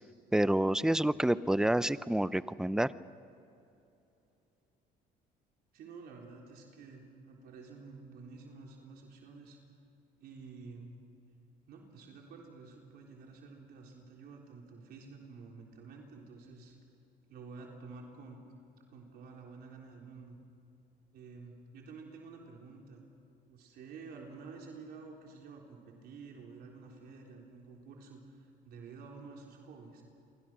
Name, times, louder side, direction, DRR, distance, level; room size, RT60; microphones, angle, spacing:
voice 1, 0.3-2.9, right 1 dB, 5° right, 16 dB, 0.6 m, -28 dB
voice 2, 5.7-9.6 10.2-10.9 11.7-16.8 17.3-18.4 18.9-20.4 21.1-23.1 23.5-30.0, right 4 dB, 70° right, 0 dB, 3.8 m, -50 dB
29.0 x 24.0 x 6.2 m, 2.8 s
cardioid pair, 110°, 17 cm